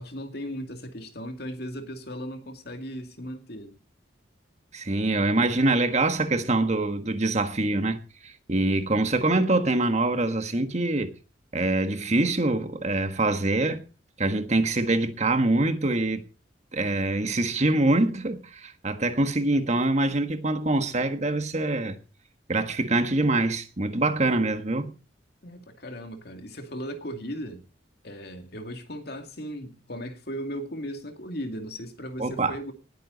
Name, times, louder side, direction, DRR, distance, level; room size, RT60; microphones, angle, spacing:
voice 1, 0.0-3.8 25.4-27.6 28.0-32.7, equal, 55° left, 2.5 m, -37 dB
voice 2, 4.7-11.1 11.5-13.8 14.2-16.2 16.7-22.0 22.5-24.9 32.2-32.5, right 2 dB, 35° right, 1.4 m, -24 dB
19.0 x 9.3 x 4.0 m
head